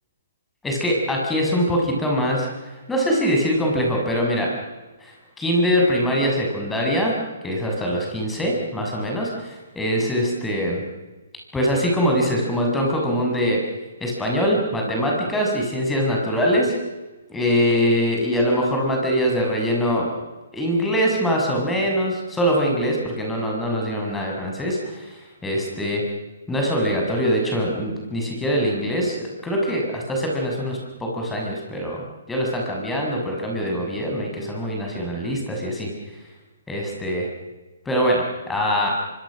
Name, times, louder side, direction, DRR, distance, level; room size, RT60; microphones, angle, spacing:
voice 1, 0.6-2.5 2.9-4.5 5.0-5.1 5.4-10.8 11.5-13.6 14.0-16.8 17.3-20.1 20.5-25.2 25.4-26.0 26.5-35.9 36.7-37.3 37.9-38.9, equal, 10° left, -1 dB, 6.9 m, -23 dB
25.5 x 25.0 x 6.5 m, 1.2 s
hypercardioid pair, 135°, 0 cm